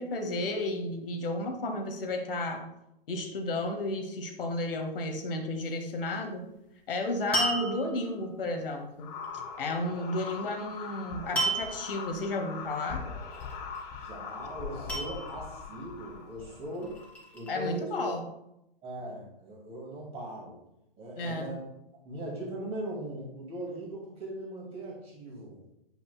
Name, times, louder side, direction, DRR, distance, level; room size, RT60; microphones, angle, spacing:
voice 1, 0.0-2.6 3.1-6.4 6.9-9.1 9.6-13.0 17.5-18.2 21.2-21.5, left 2 dB, 65° left, 5 dB, 1.1 m, -32 dB
sound 1, 7.3-8.2 11.4-12.0 13.3-13.8 14.9-15.7 16.6-17.5, right 1 dB, 5° left, 2.0 m, -32 dB
sound 2, 9.0-17.0, left 5 dB, 40° left, 1.3 m, -41 dB
voice 2, 13.9-16.9 17.3-18.0 18.8-20.5 21.0-21.7 22.0-25.6, right 1 dB, 20° right, -3 dB, 2.3 m, -39 dB
7.8 x 5.8 x 2.2 m, 0.83 s
hypercardioid pair, 130°, 30 cm